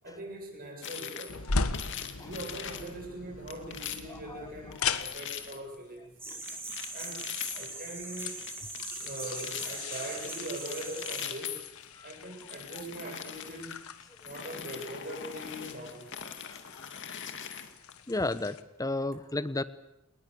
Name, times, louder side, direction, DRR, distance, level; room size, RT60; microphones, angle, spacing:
voice 1, 0.0-1.4 2.2-6.2 6.9-7.2 7.5-8.4 9.0-11.6 12.0-13.9 14.2-16.1, right 1 dB, 45° right, 1 dB, 7.8 m, -42 dB
sound 1, 0.8-1.4 1.7-2.9 3.5-4.2 4.7-5.6 6.4-7.7 8.1-9.8 10.2-11.9 12.4-13.7 14.2-17.9, left 8 dB, 55° left, 2.3 m, -41 dB
sound 2, 1.3-18.6, left 4 dB, 75° left, 1.5 m, -40 dB
voice 2, 4.1-4.5 4.8-4.9 6.3-6.4 11.9-12.1 16.5-16.9 18.1-19.6, left 2 dB, 15° left, 14 dB, 1.1 m, -34 dB
sound 3, 6.2-11.3, right 2 dB, 10° right, 5.1 m, -41 dB
30.0 x 20.5 x 7.1 m, 0.82 s
head